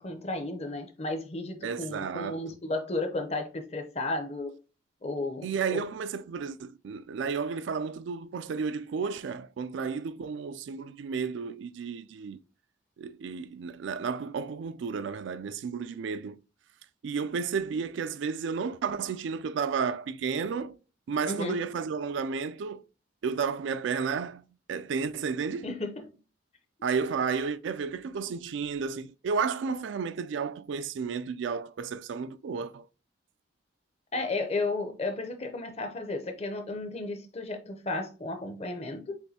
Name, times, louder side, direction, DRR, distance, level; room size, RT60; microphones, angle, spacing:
voice 1, 0.0-4.6 5.0-5.8 21.2-21.6 25.6-26.1 34.1-39.2, left 2 dB, 35° left, 0.6 m, -33 dB
voice 2, 1.6-2.4 5.4-12.4 13.0-16.4 17.0-20.8 21.1-22.8 23.2-25.7 26.8-32.9, right 5 dB, 70° right, 0.3 m, -32 dB
6.8 x 2.6 x 2.8 m
head